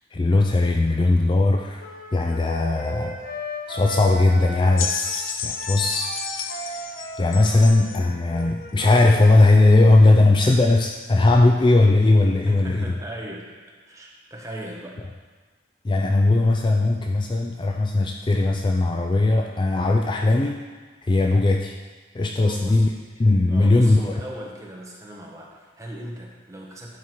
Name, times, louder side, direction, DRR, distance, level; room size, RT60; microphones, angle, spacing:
voice 1, 0.1-1.8 2.1-3.2 3.7-6.2 6.4-6.9 7.2-12.9 15.8-20.6 21.0-21.8 22.1-22.9 23.2-24.2, left 2 dB, 25° left, 2 dB, 0.4 m, -19 dB
Wind instrument woodwind instrument, 1.8-9.3, equal, 50° left, 1.2 m, -36 dB
sound 1, 4.8-8.0 8.9-9.0, left 7 dB, 85° left, 0.6 m, -31 dB
voice 2, 12.4-13.5 13.8-15.0 22.4-22.9 23.5-27.0, right 1 dB, 15° right, -2 dB, 1.2 m, -38 dB
11.0 x 4.7 x 4.5 m, 1.4 s
head